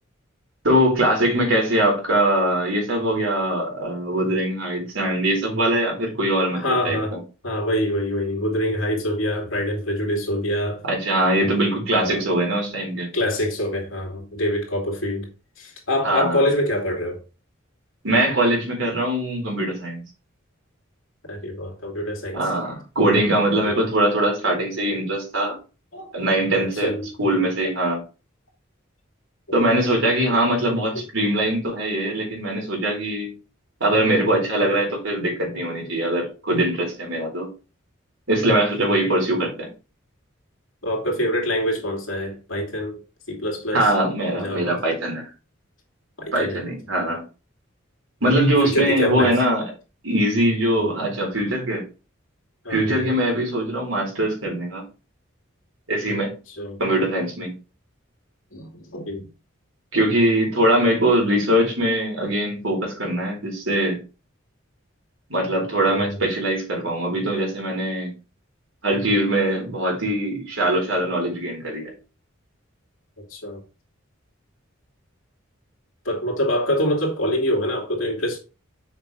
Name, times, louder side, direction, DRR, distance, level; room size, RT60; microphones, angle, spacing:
voice 1, 0.6-7.2 10.8-13.1 16.0-16.4 18.0-20.0 22.3-25.5 26.1-26.9 27.2-28.0 29.5-33.3 33.8-37.5 38.3-39.7 43.7-45.3 46.3-47.2 48.2-49.6 50.0-51.8 52.7-54.8 55.9-56.3 56.8-57.5 59.9-64.0 65.3-68.1 68.8-71.9, right 1 dB, 80° right, 4.1 m, -22 dB
voice 2, 6.5-7.2 7.4-10.8 11.4-11.5 12.0-12.2 13.1-15.3 15.6-17.2 21.3-22.4 23.6-23.9 25.9-26.1 26.6-27.1 27.6-27.7 30.9-31.0 35.4-36.1 40.8-43.0 43.3-43.9 44.3-44.8 46.2-46.6 47.0-47.1 48.6-49.4 50.7-50.9 52.6-53.1 56.5-56.8 58.5-59.3 65.9-66.1 73.2-73.6 76.0-78.4, left 1 dB, 75° left, 2.7 m, -25 dB
6.8 x 5.4 x 3.5 m
head